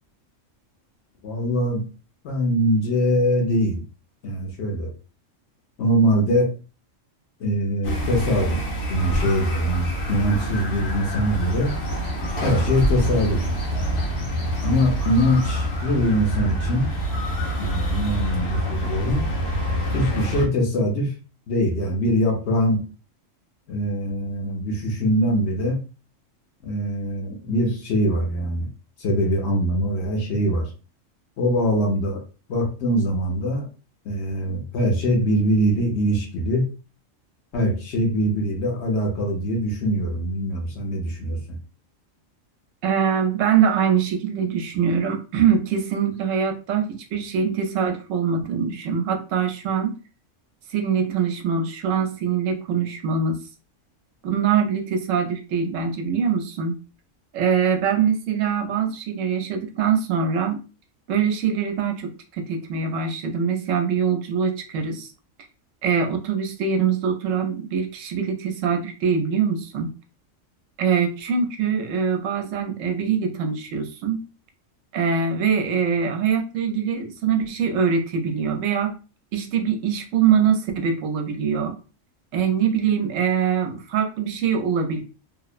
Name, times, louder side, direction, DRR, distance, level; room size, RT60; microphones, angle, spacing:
voice 1, 1.2-1.8 2.2-3.8 4.2-4.9 5.8-6.5 7.4-11.7 12.4-13.5 14.6-16.9 17.6-19.3 19.9-21.1 21.5-22.8 23.7-25.8 26.6-28.7 29.0-30.7 31.4-32.2 32.5-33.7 34.0-36.7 37.5-41.4, equal, 60° left, 1 dB, 0.9 m, -22 dB
sound 1, 7.8-20.5, equal, 80° left, 1.2 m, -26 dB
voice 2, 42.8-50.0 50.7-53.4 54.2-56.8 57.3-60.6 61.1-65.1 65.8-69.9 70.8-74.2 74.9-78.9 79.3-81.8 82.3-85.0, right 7 dB, 75° right, 4 dB, 0.9 m, -23 dB
2.8 x 2.0 x 2.3 m, 0.34 s
omnidirectional pair, 1.4 m